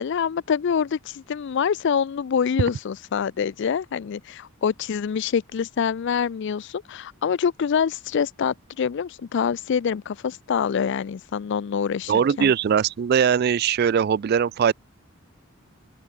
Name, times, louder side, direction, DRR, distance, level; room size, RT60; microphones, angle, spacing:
voice 1, 0.0-12.1 12.4-12.5, left 7 dB, 55° left, 0.4 m, -25 dB
voice 2, 12.1-14.7, right 7 dB, 45° right, 0.3 m, -20 dB
open air
head